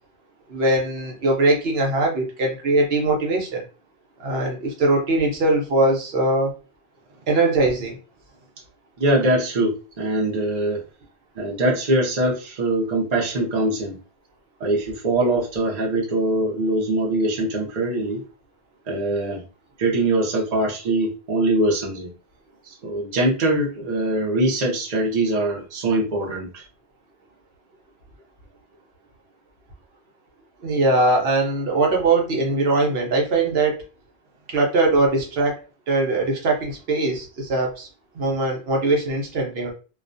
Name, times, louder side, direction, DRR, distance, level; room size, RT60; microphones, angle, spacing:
voice 1, 0.5-3.6 4.2-6.5 7.3-8.0 30.6-33.8 34.5-35.6 35.9-37.9 38.1-39.7, right 2 dB, 75° right, 0 dB, 1.0 m, -21 dB
voice 2, 9.0-10.8 11.4-14.0 14.6-18.2 18.9-19.4 19.8-22.1 22.7-26.6, right 1 dB, 45° right, -2 dB, 0.7 m, -22 dB
2.4 x 2.2 x 2.5 m, 0.33 s
omnidirectional pair, 1.0 m